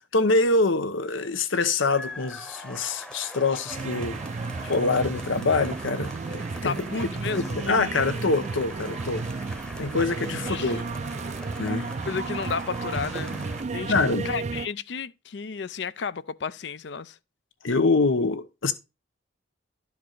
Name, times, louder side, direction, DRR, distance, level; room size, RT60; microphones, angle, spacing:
voice 1, 0.1-4.2 4.6-6.8 7.4-9.2 9.8-10.8 11.6-11.9 13.9-14.3 17.6-18.7, left 3 dB, 85° left, 1.0 m, -25 dB
sound 1, 1.9-13.6, left 1 dB, 5° left, 0.9 m, -42 dB
sound 2, 3.7-14.7, right 4 dB, 35° right, 0.4 m, -33 dB
voice 2, 6.6-7.6 10.5-10.7 11.7-13.9 14.2-17.2, left 5 dB, 60° left, 0.5 m, -33 dB
12.0 x 4.8 x 3.9 m
head